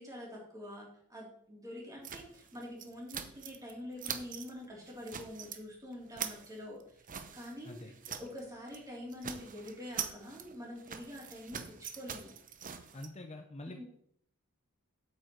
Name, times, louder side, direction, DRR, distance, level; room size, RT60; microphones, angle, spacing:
voice 1, 0.0-7.0 7.3-7.8 8.2-12.3 13.7-13.8, left 1 dB, 15° right, -3 dB, 3.6 m, -46 dB
sound 1, 2.0-3.7 4.0-4.5 4.9-5.6 5.9-8.4 8.7-8.9 9.1-13.1, right 8 dB, 35° right, 0.8 m, -43 dB
voice 2, 12.9-13.8, left 1 dB, 30° left, 4 dB, 0.9 m, -45 dB
8.9 x 8.5 x 4.7 m, 0.66 s
head